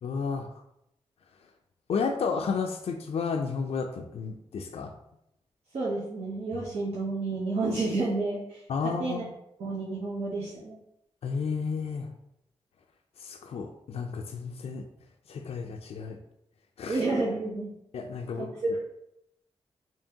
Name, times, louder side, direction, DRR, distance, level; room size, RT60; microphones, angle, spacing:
voice 1, 0.0-0.6 1.9-4.9 6.5-6.6 8.7-9.3 11.2-12.1 13.2-14.9 15.3-16.2 16.8-17.0 17.9-18.5, left 5 dB, 65° left, 4 dB, 0.4 m, -32 dB
voice 2, 5.7-9.2 9.6-10.8 16.9-17.7 18.4-18.8, right 3 dB, 70° right, -7 dB, 1.0 m, -30 dB
4.4 x 2.8 x 2.8 m, 0.80 s
cardioid pair, 60°, 11 cm